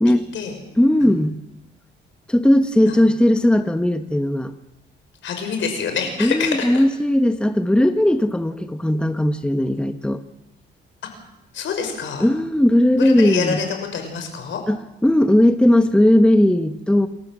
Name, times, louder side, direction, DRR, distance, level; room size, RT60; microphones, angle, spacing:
voice 1, 0.8-1.4 2.3-4.5 6.2-10.2 12.2-13.6 14.7-17.1, left 1 dB, 5° left, 9 dB, 1.2 m, -17 dB
voice 2, 5.2-6.8 11.5-12.2 13.0-13.7 13.9-14.6, left 6 dB, 75° left, 5 dB, 5.9 m, -26 dB
28.5 x 14.5 x 7.5 m, 0.92 s
cardioid pair, 90°, 20 cm